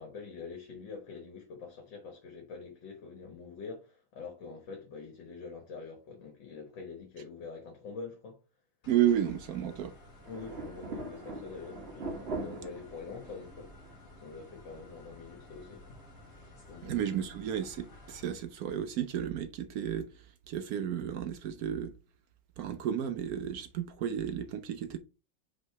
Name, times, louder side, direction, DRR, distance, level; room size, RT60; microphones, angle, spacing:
voice 1, 0.0-8.4 10.3-13.7 14.2-15.8 16.7-17.0, left 5 dB, 75° left, 2.0 m, -45 dB
sound 1, 8.8-18.3, left 1 dB, 45° left, 1.9 m, -53 dB
voice 2, 8.9-9.9 16.8-20.1 20.5-21.9 22.6-25.0, right 10 dB, 75° right, 0.8 m, -32 dB
sound 2, 10.2-15.6 15.9-16.0 16.6-16.7 17.5-18.2 18.5-18.6 19.1-19.2, right 2 dB, 40° right, 1.1 m, -42 dB
5.4 x 3.8 x 4.5 m
omnidirectional pair, 2.1 m